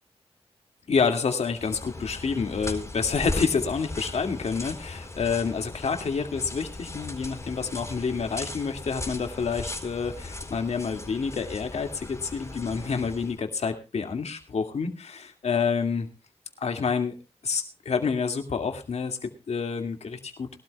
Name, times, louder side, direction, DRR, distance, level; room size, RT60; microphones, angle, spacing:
voice 1, 0.9-16.1 16.6-17.2 17.4-20.6, left 5 dB, 85° left, 5 dB, 2.2 m, -28 dB
sound 1, 1.5-13.4, left 2 dB, 30° left, 4.3 m, -38 dB
22.0 x 12.5 x 2.3 m, 0.31 s
cardioid pair, 55°, 11 cm